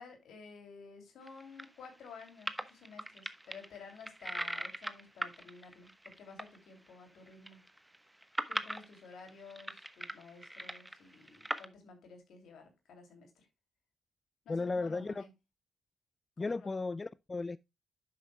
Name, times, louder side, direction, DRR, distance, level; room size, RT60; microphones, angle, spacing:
voice 1, 0.0-7.6 8.5-13.5 14.4-15.3 16.4-16.8, left 5 dB, 70° left, 2.8 m, -53 dB
sound 1, 1.3-6.6 6.9-7.0 7.3-11.7, right 1 dB, 10° right, 1.1 m, -40 dB
voice 2, 14.5-15.2 16.4-17.6, left 3 dB, 35° left, 0.3 m, -35 dB
10.5 x 7.6 x 2.3 m
hypercardioid pair, 40°, 0 cm